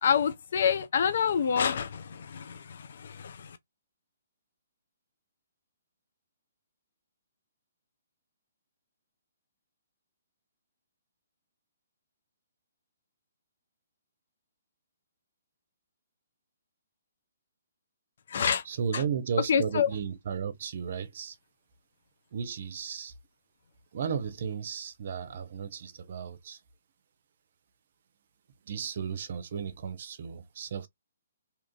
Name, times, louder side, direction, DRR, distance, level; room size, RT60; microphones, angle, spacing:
voice 1, 0.0-3.6 18.3-18.6 18.9-19.0 19.5-19.9, left 7 dB, 55° left, 0.4 m, -27 dB
voice 2, 18.6-21.4 22.3-23.1 23.9-26.6 28.7-30.9, right 7 dB, 55° right, 0.5 m, -34 dB
2.8 x 2.5 x 2.3 m
figure-of-eight pair, 130°, 0 cm